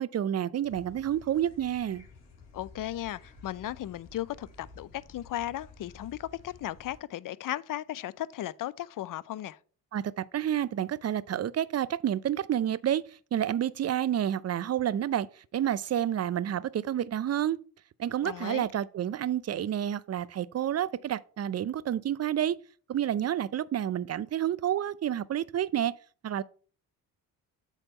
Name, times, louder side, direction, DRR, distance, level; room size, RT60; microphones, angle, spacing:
voice 1, 0.0-2.0 9.9-13.0 13.3-15.3 15.5-17.6 18.0-22.6 22.9-25.9 26.2-26.4, right 10 dB, 35° right, 0.5 m, -29 dB
sound 1, 0.6-7.0, left 4 dB, 75° left, 2.5 m, -52 dB
voice 2, 2.5-9.6 18.2-18.7, left 13 dB, 50° left, 0.5 m, -36 dB
8.2 x 3.5 x 5.4 m
hypercardioid pair, 50°, 44 cm